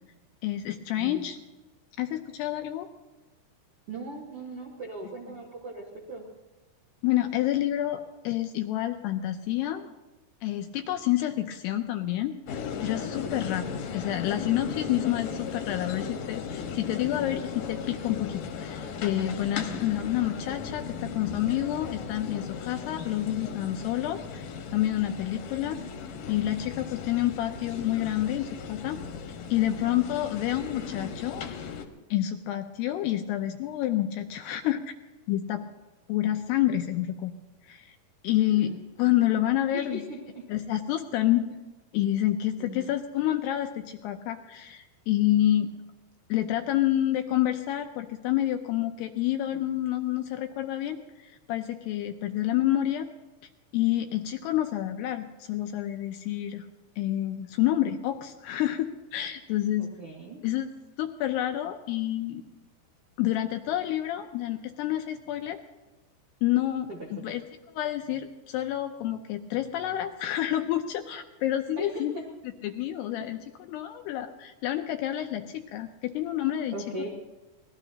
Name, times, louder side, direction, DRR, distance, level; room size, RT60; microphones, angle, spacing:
voice 1, 0.4-1.4 2.0-2.9 7.0-9.9 10.4-25.8 26.3-29.0 29.5-31.5 32.1-34.8 35.3-35.6 36.1-37.4 37.6-38.0 38.2-38.7 39.0-40.0 40.5-41.5 41.9-45.7 46.3-53.1 53.7-56.7 57.0-59.9 60.4-60.7 61.0-62.4 63.2-65.6 66.4-67.4 67.7-72.2 72.6-73.4 73.7-76.7, left 13 dB, 80° left, 6 dB, 2.5 m, -28 dB
voice 2, 3.9-6.3 13.2-13.5 19.6-19.8 29.9-30.1 38.5-38.8 39.7-40.5 42.6-42.9 59.8-60.4 66.9-67.2 71.8-72.2 76.7-77.1, right 2 dB, 65° right, -2 dB, 1.4 m, -39 dB
sound 1, 12.5-31.9, left 6 dB, 65° left, 2.4 m, -37 dB
25.0 x 19.0 x 2.9 m, 1.1 s
omnidirectional pair, 5.3 m